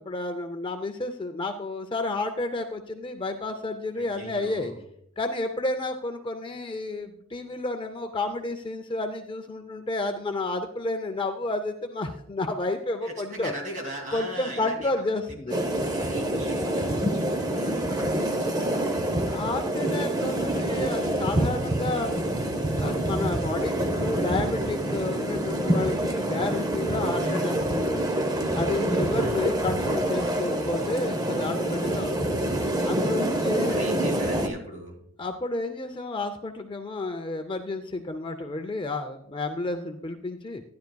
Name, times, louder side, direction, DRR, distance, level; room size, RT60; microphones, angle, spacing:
voice 1, 0.0-4.7 5.2-13.5 14.1-15.6 19.3-22.1 22.8-28.2 28.5-32.4 32.8-33.8 35.2-40.6, left 2 dB, 20° left, 7 dB, 0.5 m, -31 dB
voice 2, 4.0-4.8 13.0-15.1 15.5-19.6 27.0-27.4 29.0-29.5 33.6-35.0, right 1 dB, 35° right, 1 dB, 2.5 m, -40 dB
sound 1, 15.5-34.5, right 1 dB, 15° right, 0.7 m, -26 dB
13.0 x 10.5 x 2.3 m, 0.70 s
head